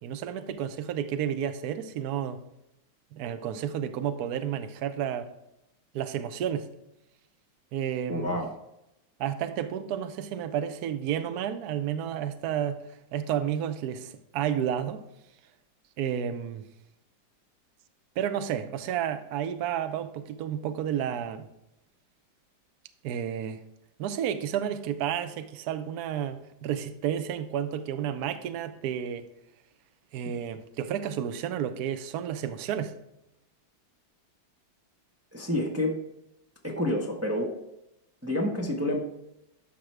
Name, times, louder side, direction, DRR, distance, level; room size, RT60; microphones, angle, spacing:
voice 1, 0.0-2.4 3.1-5.3 5.9-6.7 7.7-8.3 9.2-12.8 13.1-15.0 16.0-16.6 18.2-21.5 23.0-23.6 24.0-29.3 30.1-32.9, right 9 dB, 65° right, 10 dB, 1.1 m, -31 dB
voice 2, 8.1-8.5 35.3-35.9 36.6-37.5 38.2-39.0, left 1 dB, 10° right, 0 dB, 0.9 m, -28 dB
13.0 x 5.2 x 3.3 m, 0.87 s
omnidirectional pair, 2.1 m